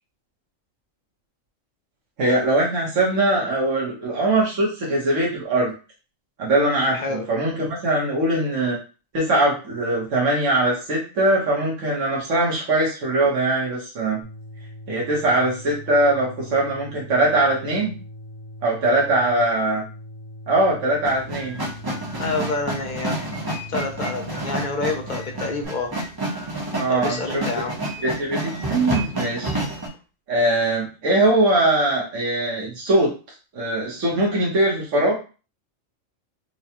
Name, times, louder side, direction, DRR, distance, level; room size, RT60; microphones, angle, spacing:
voice 1, 2.2-5.7 6.4-8.8 9.1-14.2 14.9-17.9 18.6-19.8 20.5-21.6 26.7-27.4 28.0-29.5 30.3-33.1 33.5-35.1, right 1 dB, 70° right, -5 dB, 1.6 m, -21 dB
voice 2, 6.9-7.3 22.2-23.2 23.7-25.9 26.9-27.8 29.5-29.6, left 3 dB, 65° left, 4 dB, 0.4 m, -28 dB
sound 1, 14.2-25.6, left 1 dB, 85° left, 1.7 m, -40 dB
sound 2, 21.0-29.9, right 2 dB, 20° right, 0.8 m, -29 dB
4.6 x 2.3 x 2.9 m, 0.35 s
omnidirectional pair, 1.4 m